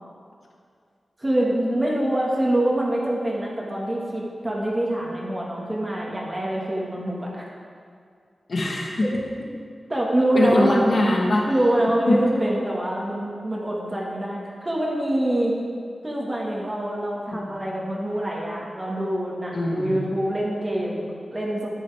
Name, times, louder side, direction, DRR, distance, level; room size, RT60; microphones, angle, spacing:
voice 1, 1.2-7.4 9.9-10.8 11.5-15.5 16.0-21.7, right 1 dB, 20° right, -4 dB, 1.6 m, -25 dB
voice 2, 8.5-9.2 10.3-11.5 12.1-12.3 17.3-17.7 19.5-20.1, left 1 dB, 50° left, -1 dB, 1.3 m, -22 dB
11.5 x 11.0 x 3.5 m, 2.2 s
wide cardioid pair, 150°, 0 cm